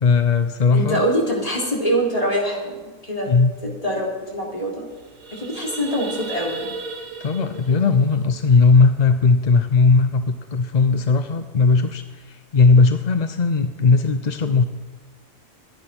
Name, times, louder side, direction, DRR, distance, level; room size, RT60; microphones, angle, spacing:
voice 1, 0.0-1.0 3.3-3.5 7.2-14.6, left 4 dB, 45° left, 9 dB, 0.6 m, -17 dB
voice 2, 0.7-3.3 3.8-4.9 5.3-6.7 14.4-14.6, equal, 25° left, -3 dB, 3.9 m, -24 dB
sound 1, 3.9-4.0 4.2-4.4 4.8-9.1, right 4 dB, 80° right, 2.2 m, -36 dB
24.0 x 9.8 x 5.9 m, 1.3 s
omnidirectional pair, 1.4 m